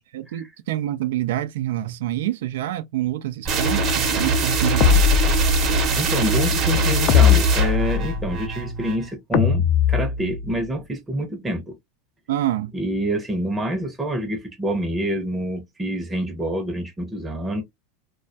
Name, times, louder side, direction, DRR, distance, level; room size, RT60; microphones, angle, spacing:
voice 1, 0.1-5.0 12.3-12.7, right 13 dB, 75° right, 0.3 m, -27 dB
sound 1, 3.5-9.1, right 2 dB, 40° right, 0.8 m, -22 dB
sound 2, 4.8-5.9 7.1-8.3 9.3-10.6, left 7 dB, 50° left, 0.4 m, -19 dB
voice 2, 5.9-11.8 12.7-17.6, right 1 dB, 10° right, 0.7 m, -27 dB
2.2 x 2.2 x 2.5 m
hypercardioid pair, 110°, 0 cm